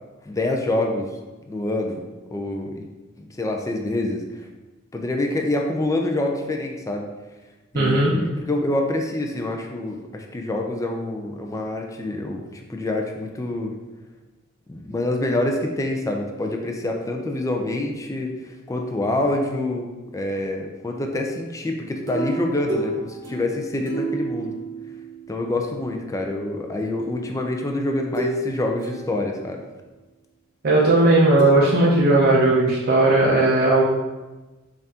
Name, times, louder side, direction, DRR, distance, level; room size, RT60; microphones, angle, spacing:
voice 1, 0.2-1.1 1.5-2.0 2.3-2.9 3.2-4.2 4.9-7.1 7.7-13.7 14.7-24.5 25.3-29.6, left 1 dB, 15° left, 2 dB, 0.4 m, -26 dB
voice 2, 7.7-8.1 30.6-33.8, right 2 dB, 50° right, -5 dB, 0.6 m, -17 dB
sound 1, 22.1-25.6 27.0-27.2 28.1-28.5 28.8-29.6 31.4-31.5, right 2 dB, 65° right, 0.9 m, -30 dB
5.4 x 2.5 x 2.8 m, 1.2 s
head